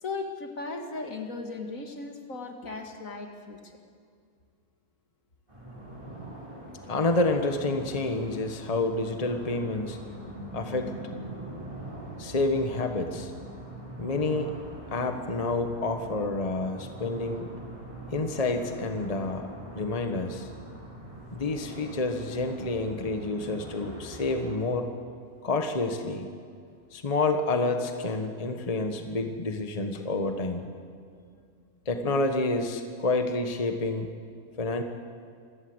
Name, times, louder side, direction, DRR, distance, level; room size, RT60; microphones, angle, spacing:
voice 1, 0.0-3.8, left 3 dB, 60° left, 4 dB, 2.4 m, -37 dB
sound 1, 5.5-24.6, right 1 dB, 20° right, 6.0 m, -43 dB
voice 2, 6.9-10.0 10.5-10.9 12.2-13.3 14.0-14.5 14.9-17.5 18.1-19.5 19.7-20.5 21.3-24.9 25.4-26.3 26.9-30.7 31.8-34.1 34.6-34.8, left 2 dB, 25° left, 6 dB, 1.3 m, -28 dB
27.0 x 17.0 x 8.0 m, 2.2 s
omnidirectional pair, 1.6 m